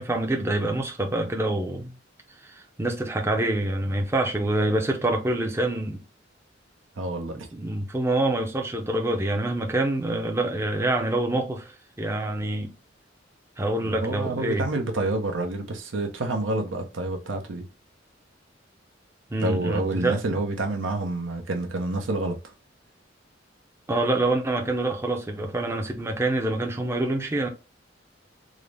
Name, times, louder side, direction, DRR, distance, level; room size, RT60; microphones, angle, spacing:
voice 1, 0.0-1.9 2.4-6.0 7.5-12.7 13.6-14.6 19.3-20.2 23.9-27.5, right 2 dB, 15° right, 0.5 m, -26 dB
voice 2, 7.0-7.5 13.8-17.7 19.4-22.5, right 2 dB, 90° right, 0.7 m, -28 dB
3.7 x 2.0 x 3.3 m
head